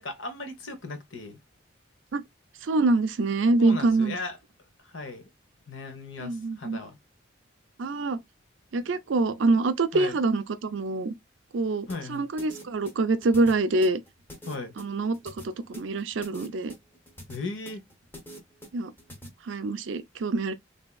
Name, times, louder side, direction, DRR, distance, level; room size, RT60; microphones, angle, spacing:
voice 1, 0.0-1.4 3.6-4.4 4.8-5.2 5.7-7.0 9.9-10.2 11.9-12.3 14.4-14.7 17.3-17.8, left 3 dB, 75° left, 1.0 m, -37 dB
voice 2, 2.6-4.2 6.2-6.8 7.8-8.2 8.7-11.1 11.5-14.0 14.8-16.7 18.7-18.9 19.4-20.5, right 3 dB, 70° right, 0.5 m, -25 dB
sound 1, 11.9-19.3, equal, 10° left, 0.9 m, -45 dB
3.4 x 2.7 x 2.3 m
head